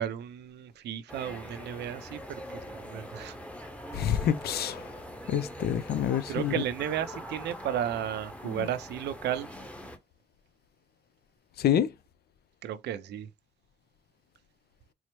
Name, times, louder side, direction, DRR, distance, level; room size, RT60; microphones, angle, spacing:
voice 1, 0.0-3.3 6.3-9.5 12.6-13.3, right 10 dB, 85° right, 0.5 m, -34 dB
sound 1, 1.1-10.0, equal, 5° left, 0.9 m, -43 dB
voice 2, 3.9-4.8 5.3-6.5 8.4-8.7 11.6-11.9, left 9 dB, 70° left, 0.5 m, -27 dB
4.5 x 2.1 x 2.9 m
cardioid pair, 75°, 17 cm